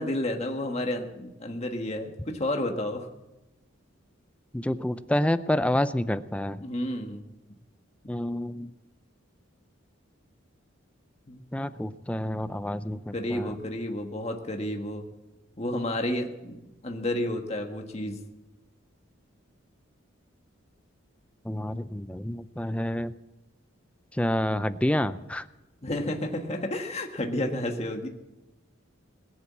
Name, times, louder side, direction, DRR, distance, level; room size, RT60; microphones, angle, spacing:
voice 1, 0.0-3.1 6.6-7.2 11.3-11.4 13.1-15.0 15.6-18.2 25.8-28.1, left 1 dB, 30° left, 3 dB, 1.4 m, -31 dB
voice 2, 4.5-6.6 8.1-8.7 11.5-13.6 21.4-23.1 24.1-25.4, left 1 dB, 5° left, 13 dB, 0.4 m, -28 dB
21.0 x 7.1 x 8.5 m, 1.0 s
head